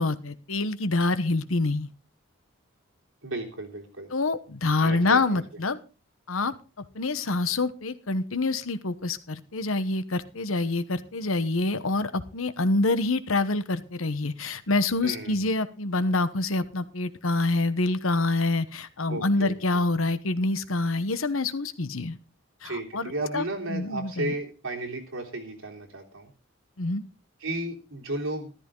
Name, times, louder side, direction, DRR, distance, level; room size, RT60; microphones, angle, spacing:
voice 1, 0.0-1.9 4.1-5.8 6.3-22.2 22.6-24.3 26.8-27.0, left 2 dB, 85° left, 13 dB, 1.1 m, -26 dB
voice 2, 3.2-4.1 4.8-5.4 15.0-15.5 19.1-19.8 22.6-26.3 27.4-28.5, right 2 dB, 85° right, 1 dB, 3.4 m, -34 dB
14.0 x 13.5 x 3.8 m, 0.33 s
head